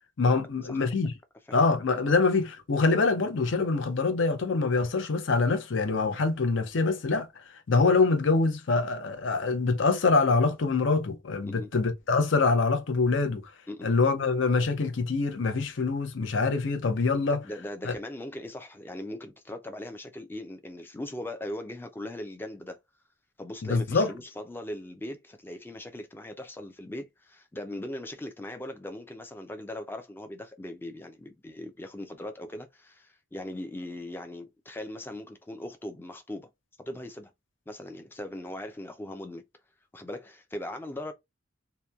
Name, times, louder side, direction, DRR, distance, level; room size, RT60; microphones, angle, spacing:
voice 1, 0.2-1.1 1.5-13.4 13.8-17.4 17.8-17.9 23.6-24.1, left 4 dB, 70° left, 0.6 m, -25 dB
voice 2, 17.4-22.8 23.4-36.5 36.8-37.3 37.7-39.5 39.9-41.1, left 1 dB, 10° left, 0.4 m, -39 dB
2.9 x 2.2 x 2.3 m
head